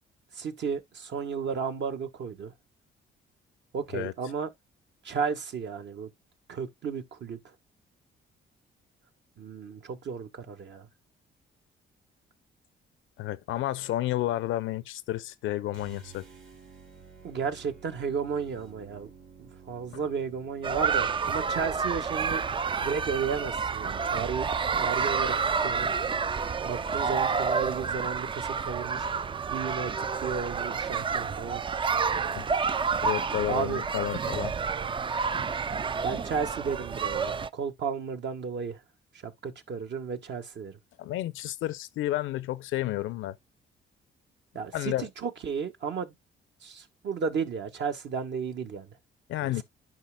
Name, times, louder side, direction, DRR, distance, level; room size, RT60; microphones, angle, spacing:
voice 1, 0.3-2.5 3.7-4.5 5.0-6.1 6.5-7.4 9.4-10.9 17.2-19.1 19.4-22.4 22.8-24.5 24.7-25.3 25.6-25.9 26.6-29.1 29.5-31.6 33.5-33.8 36.0-38.8 39.2-40.8 44.5-46.1 46.6-48.9 49.4-49.6, right 6 dB, 65° right, 1.4 m, -33 dB
voice 2, 13.2-16.3 19.9-20.0 32.3-32.5 33.0-34.5 41.0-43.4 44.7-45.1 49.3-49.6, left 14 dB, 85° left, 0.6 m, -31 dB
sound 1, 15.7-22.0, right 6 dB, 90° right, 2.8 m, -52 dB
sound 2, 20.6-37.5, right 5 dB, 25° right, 0.3 m, -29 dB
10.5 x 5.2 x 2.2 m
cardioid pair, 90°, 20 cm